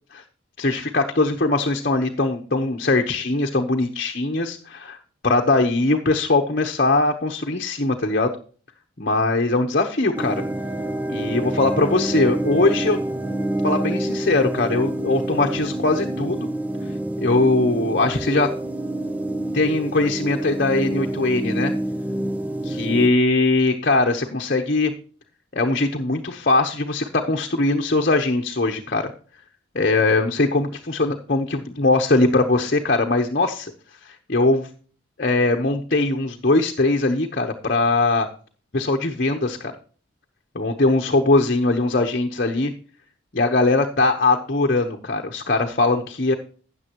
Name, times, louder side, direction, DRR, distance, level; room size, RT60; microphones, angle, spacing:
voice 1, 0.6-5.0 5.2-8.3 9.0-10.4 11.1-13.0 13.6-16.5 17.2-18.5 19.5-21.7 22.6-24.9 25.5-29.1 29.7-33.7 34.0-34.7 35.2-38.3 38.7-39.7 40.5-42.7 43.3-46.3, left 2 dB, 45° left, 3 dB, 1.0 m, -21 dB
sound 1, 10.2-23.1, right 1 dB, 10° right, 0.8 m, -27 dB
13.0 x 9.0 x 3.0 m, 0.41 s
head